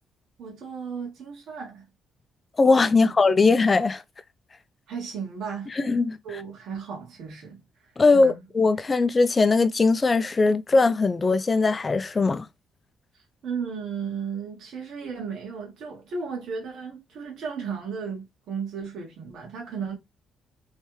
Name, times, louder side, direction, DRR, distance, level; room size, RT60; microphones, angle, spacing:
voice 1, 0.4-1.9 3.0-3.4 4.9-5.7 6.2-8.4 13.1-20.0, right 6 dB, 75° right, 1.5 m, -35 dB
voice 2, 2.6-4.0 5.8-6.2 8.0-12.5, left 3 dB, 30° left, 0.5 m, -20 dB
3.3 x 3.2 x 3.1 m
cardioid pair, 90°, 0 cm